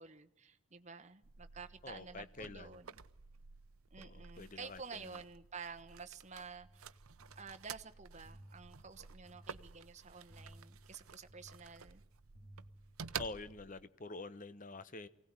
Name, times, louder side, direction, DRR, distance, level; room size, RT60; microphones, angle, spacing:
voice 1, 0.0-3.0 3.9-6.9 7.4-12.0, right 5 dB, 35° right, 8 dB, 1.2 m, -51 dB
sound 1, 1.2-13.9, right 6 dB, 85° right, 0.8 m, -51 dB
voice 2, 1.8-2.8 4.0-5.0 13.2-15.1, left 3 dB, 35° left, 14 dB, 0.9 m, -47 dB
sound 2, 6.6-13.5, right 1 dB, 60° left, 7.4 m, -60 dB
24.0 x 17.5 x 9.7 m, 0.80 s
head